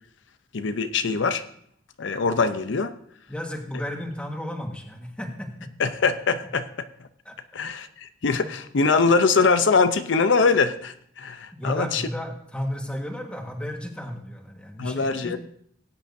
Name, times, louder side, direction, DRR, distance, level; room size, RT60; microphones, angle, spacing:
voice 1, 0.5-1.4 2.0-3.0 5.8-6.7 7.5-12.0 14.8-15.4, left 4 dB, 80° left, 10 dB, 0.6 m, -22 dB
voice 2, 3.3-5.7 7.2-7.4 11.5-15.4, equal, 5° left, 2 dB, 1.4 m, -33 dB
18.5 x 8.9 x 2.7 m, 0.64 s
head